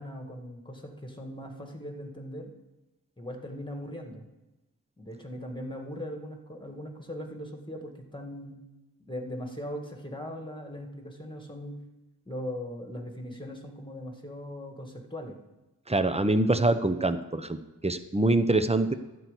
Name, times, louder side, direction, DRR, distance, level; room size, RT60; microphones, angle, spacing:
voice 1, 0.0-2.5 3.2-4.3 5.0-8.6 9.0-11.8 12.3-15.4, equal, 10° left, 3 dB, 1.9 m, -39 dB
voice 2, 15.9-17.6 17.8-18.9, right 2 dB, 15° right, 9 dB, 0.8 m, -24 dB
12.0 x 4.7 x 8.2 m, 1.1 s
wide cardioid pair, 45°, 38 cm